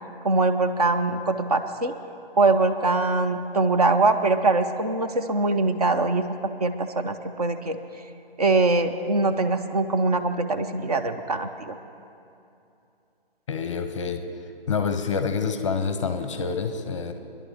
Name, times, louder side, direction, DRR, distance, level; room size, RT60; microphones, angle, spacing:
voice 1, 0.2-1.9 2.4-6.3 6.6-7.8 8.4-11.8, right 3 dB, 40° right, 7 dB, 0.6 m, -23 dB
voice 2, 13.5-14.2 14.7-17.1, left 5 dB, 30° left, 8 dB, 0.7 m, -27 dB
22.0 x 10.5 x 3.4 m, 2.7 s
figure-of-eight pair, 150°, 30 cm